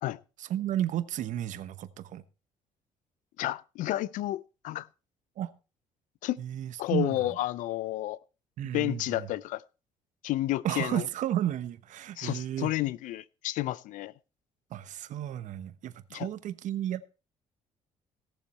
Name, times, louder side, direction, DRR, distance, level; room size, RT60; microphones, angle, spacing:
voice 1, 0.4-2.2 5.4-5.5 6.4-7.2 8.6-9.3 10.6-12.7 14.7-17.1, right 11 dB, 65° right, 1.0 m, -33 dB
voice 2, 3.4-4.9 6.2-6.4 6.8-8.2 8.7-9.6 10.2-11.0 12.2-14.1 16.1-16.3, left 16 dB, 75° left, 0.5 m, -31 dB
16.5 x 7.1 x 4.2 m
supercardioid pair, 65°, 14 cm